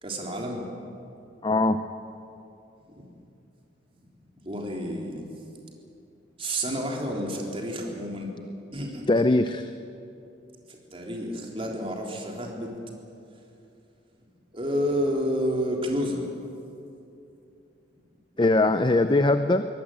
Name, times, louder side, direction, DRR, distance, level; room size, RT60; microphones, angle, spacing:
voice 1, 0.0-0.6 2.8-3.1 4.4-5.2 6.4-8.3 8.7-9.0 10.7-12.7 14.5-16.2, equal, 30° right, 0 dB, 3.8 m, -30 dB
voice 2, 1.4-1.8 9.1-9.7 18.4-19.7, left 2 dB, 25° left, 10 dB, 0.6 m, -21 dB
24.0 x 18.5 x 9.2 m, 2.7 s
head